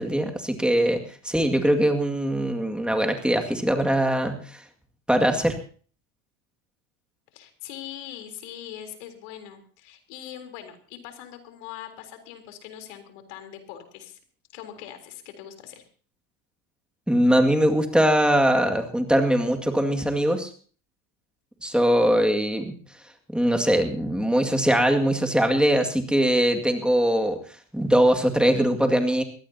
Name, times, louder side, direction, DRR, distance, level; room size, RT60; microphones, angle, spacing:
voice 1, 0.0-4.6 5.1-5.6 17.1-20.5 21.6-22.7 23.3-27.4 27.7-29.2, equal, ahead, 3 dB, 2.1 m, -21 dB
voice 2, 7.3-14.2 14.5-15.8, left 11 dB, 75° left, 6 dB, 3.8 m, -41 dB
22.5 x 16.5 x 2.8 m, 0.42 s
supercardioid pair, 110°, 37 cm